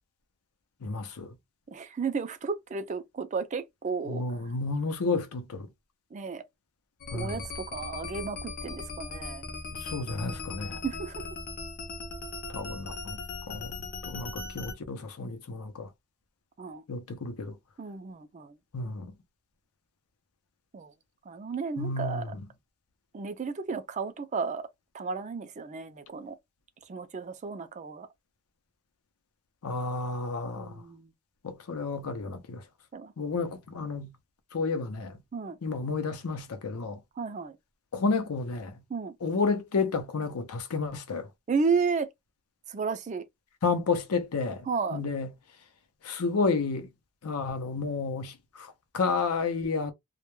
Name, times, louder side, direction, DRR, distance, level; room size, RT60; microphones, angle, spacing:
voice 1, 0.8-1.3 4.1-5.7 7.1-7.4 9.7-10.8 12.5-13.2 13.5-15.9 16.9-17.6 18.7-19.1 21.8-22.4 29.6-30.8 31.4-32.6 33.2-34.1 34.5-35.2 35.6-37.0 37.9-38.7 39.2-41.3 43.6-45.3 46.0-46.9 47.2-49.9, left 4 dB, 85° left, 0.6 m, -31 dB
voice 2, 1.7-4.5 6.1-6.4 7.1-9.4 10.8-11.3 16.6-16.8 17.8-18.6 20.7-20.9 21.3-22.3 23.1-24.7 24.9-26.4 26.9-28.1 30.6-31.1 32.9-33.1 35.3-35.6 37.2-37.6 38.9-39.1 41.5-42.1 42.7-43.2 44.7-45.0, right 5 dB, 35° right, 0.3 m, -33 dB
sound 1, 7.0-14.7, left 3 dB, 40° left, 0.6 m, -39 dB
2.1 x 2.1 x 3.0 m
head